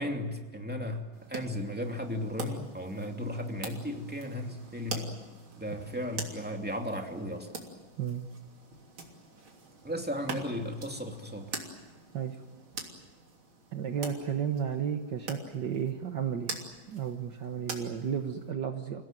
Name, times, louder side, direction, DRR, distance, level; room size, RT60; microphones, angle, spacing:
voice 1, 0.0-5.2 5.6-7.5 9.8-11.6, left 1 dB, 5° right, 3 dB, 2.6 m, -35 dB
sound 1, 1.1-18.5, right 3 dB, 90° right, 4.0 m, -44 dB
voice 2, 13.7-16.5 16.9-19.0, right 8 dB, 60° right, 6 dB, 1.8 m, -33 dB
29.0 x 17.5 x 9.2 m, 1.4 s
omnidirectional pair, 2.2 m